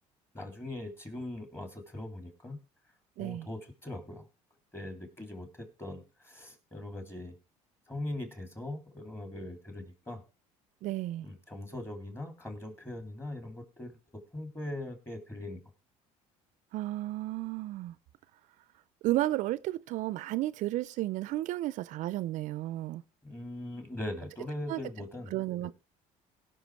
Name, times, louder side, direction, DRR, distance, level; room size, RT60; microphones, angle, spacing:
voice 1, 0.3-2.6 3.2-4.3 4.7-7.3 7.9-10.2 11.2-15.6 23.2-25.3, left 1 dB, 15° left, 3.1 m, -41 dB
voice 2, 3.2-3.5 10.8-11.3 16.7-18.0 19.0-23.0 24.7-24.8 25.3-25.8, right 16 dB, 65° right, 0.5 m, -33 dB
17.0 x 6.0 x 4.6 m
cardioid pair, 105°, 14 cm